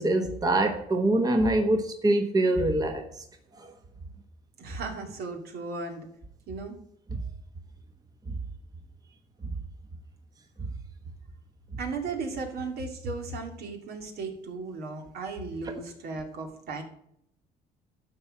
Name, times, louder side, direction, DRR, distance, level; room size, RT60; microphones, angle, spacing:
voice 1, 0.0-3.0 3.6-3.7, right 1 dB, 20° right, 1.2 m, -24 dB
voice 2, 4.6-6.1 6.5-6.8 11.8-16.8, right 3 dB, 70° right, 2.5 m, -36 dB
12.0 x 4.8 x 7.7 m
cardioid pair, 110°, 17 cm